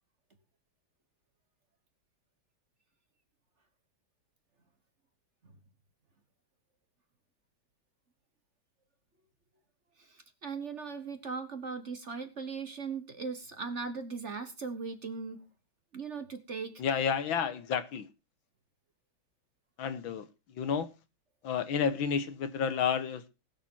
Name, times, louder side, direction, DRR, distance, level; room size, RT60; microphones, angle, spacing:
voice 1, 10.0-15.4 15.9-16.8, right 5 dB, 40° right, 8 dB, 1.3 m, -39 dB
voice 2, 16.8-18.1 19.8-20.9 21.4-23.3, left 7 dB, 75° left, 12 dB, 1.9 m, -31 dB
20.0 x 6.8 x 4.5 m, 0.28 s
omnidirectional pair, 2.2 m